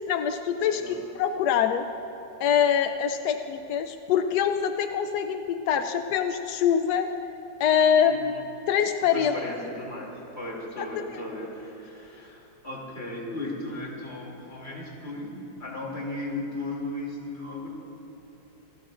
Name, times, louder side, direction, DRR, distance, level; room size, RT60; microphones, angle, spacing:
voice 1, 0.0-1.9 2.4-7.1 7.6-9.3 10.8-10.9, left 8 dB, 75° left, 7 dB, 0.9 m, -24 dB
voice 2, 0.7-1.0 8.1-8.3 9.1-17.7, left 2 dB, 30° left, -4 dB, 3.0 m, -36 dB
28.0 x 15.5 x 2.5 m, 2.9 s
omnidirectional pair, 2.3 m